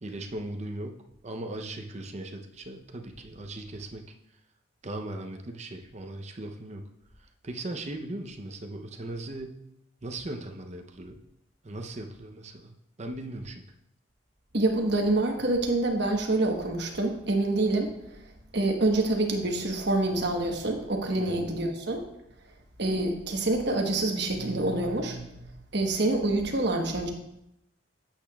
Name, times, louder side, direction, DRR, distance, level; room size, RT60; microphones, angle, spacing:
voice 1, 0.0-4.0 4.8-6.8 7.4-9.6 10.0-11.2 11.6-12.7 13.0-13.6 21.1-21.5, right 1 dB, 35° right, 4 dB, 0.7 m, -38 dB
voice 2, 14.5-17.9 18.5-22.0 22.8-25.5 25.7-27.1, right 2 dB, 55° right, 2 dB, 1.2 m, -26 dB
8.9 x 8.3 x 2.3 m, 0.81 s
head